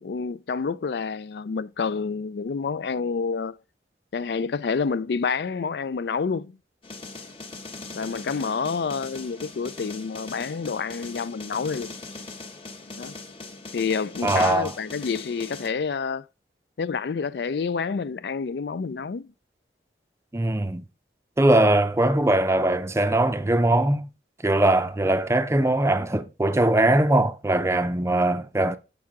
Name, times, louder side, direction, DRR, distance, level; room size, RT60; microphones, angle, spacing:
voice 1, 0.0-3.6 4.1-6.5 7.9-11.9 13.0-13.1 13.7-16.2 16.8-19.3, left 5 dB, 65° left, 0.4 m, -28 dB
sound 1, 6.8-15.7, left 3 dB, 30° left, 1.1 m, -40 dB
voice 2, 14.2-14.7 20.3-20.9 21.4-24.1 24.4-28.8, right 1 dB, 15° right, 0.5 m, -21 dB
7.5 x 6.0 x 3.6 m
head